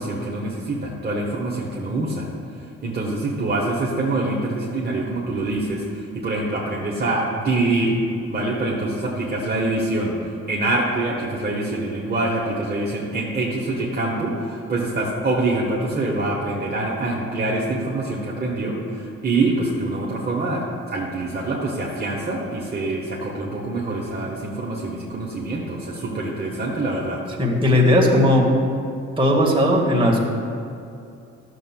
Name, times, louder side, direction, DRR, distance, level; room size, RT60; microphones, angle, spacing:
voice 1, 0.0-2.3 2.8-8.0 8.3-27.2, right 2 dB, 30° right, -4 dB, 1.2 m, -25 dB
voice 2, 27.4-28.5 29.2-30.2, left 1 dB, 15° right, -3 dB, 1.5 m, -17 dB
12.5 x 6.9 x 2.2 m, 2.6 s
cardioid pair, 90°, 30 cm